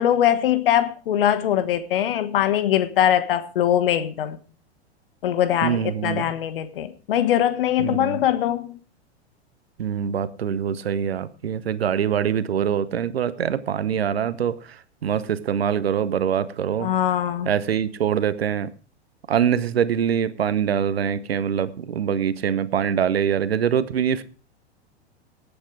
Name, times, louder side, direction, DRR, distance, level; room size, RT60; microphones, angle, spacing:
voice 1, 0.0-4.4 5.2-8.8 16.8-17.5, left 11 dB, 55° left, 1.4 m, -22 dB
voice 2, 5.6-6.3 7.8-8.2 9.8-16.9 17.4-18.7 19.3-24.2, right 8 dB, 65° right, 1.2 m, -24 dB
18.0 x 8.7 x 4.8 m
figure-of-eight pair, 95°, 33 cm